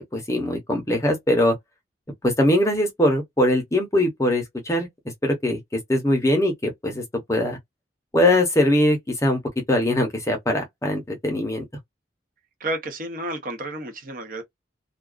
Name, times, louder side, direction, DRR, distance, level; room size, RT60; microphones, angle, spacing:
voice 1, 0.0-1.5 2.2-4.9 5.2-5.6 5.9-7.0 7.3-7.6 8.1-9.4 9.7-11.6, left 1 dB, 15° left, 0.7 m, -21 dB
voice 2, 12.6-14.4, right 1 dB, 45° right, 0.7 m, -31 dB
2.4 x 2.3 x 2.3 m
head